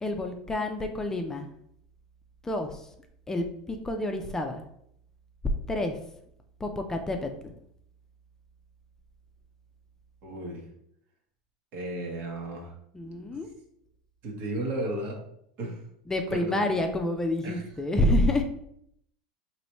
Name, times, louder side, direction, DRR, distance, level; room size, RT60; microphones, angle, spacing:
voice 1, 0.0-1.5 2.4-2.9 3.3-4.6 5.7-6.0 6.6-7.5 12.9-13.5 16.1-18.4, left 1 dB, 15° left, 4 dB, 0.5 m, -28 dB
voice 2, 10.2-10.7 11.7-12.7 14.2-15.2 15.6-15.8 16.3-16.5 17.4-17.6, right 1 dB, 55° right, 0 dB, 1.3 m, -34 dB
4.1 x 3.1 x 3.0 m, 0.72 s
hypercardioid pair, 95°, 4 cm